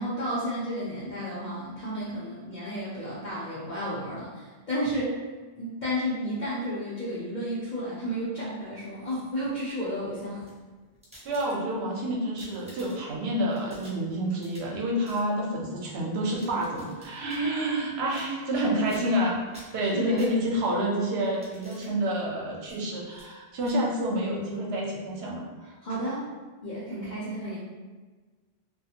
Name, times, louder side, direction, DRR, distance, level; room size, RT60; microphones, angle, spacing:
voice 1, 0.0-5.2 5.6-10.4 18.5-19.1 19.8-20.3 25.8-26.2 26.6-27.6, equal, 50° left, -10 dB, 0.7 m, -32 dB
sound 1, 8.8-9.5 10.3-11.9 12.2-13.2 13.5-14.8 15.0-15.3 16.1-17.4 18.1-18.6 18.9-19.2 19.5-20.7 21.2-21.9 22.6-22.8 23.1-23.3 23.6-23.8, equal, 5° right, 0.6 m, -52 dB
voice 2, 11.2-19.4 19.7-25.7, right 1 dB, 75° right, -2 dB, 0.9 m, -28 dB
2.4 x 2.3 x 2.7 m, 1.4 s
omnidirectional pair, 1.1 m